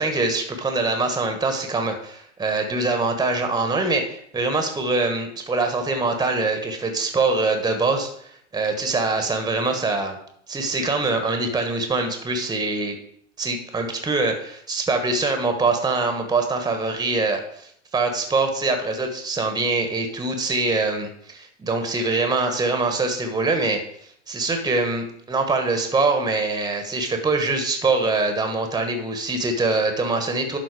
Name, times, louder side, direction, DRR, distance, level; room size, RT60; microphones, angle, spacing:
voice 1, 0.0-10.2 10.5-13.0 13.4-23.8 24.3-30.6, right 3 dB, 10° right, 5 dB, 1.4 m, -24 dB
11.5 x 4.1 x 4.9 m, 0.68 s
hypercardioid pair, 95°, 38 cm